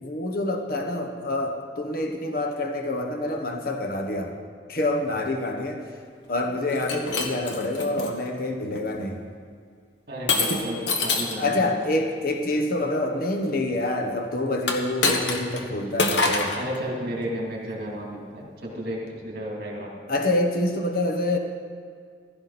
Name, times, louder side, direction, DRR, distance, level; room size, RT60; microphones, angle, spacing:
voice 1, 0.0-4.3 4.7-5.8 6.3-9.2 11.4-16.6 20.1-21.4, left 2 dB, 50° left, 3 dB, 1.1 m, -27 dB
Shatter, 6.7-8.1 8.8-9.1 10.3-11.4 14.6-15.6 16.0-16.6, left 3 dB, 70° left, 1.4 m, -25 dB
voice 2, 10.1-11.8 16.5-20.0, equal, 50° right, -3 dB, 3.0 m, -33 dB
15.5 x 13.0 x 4.3 m, 2.2 s
head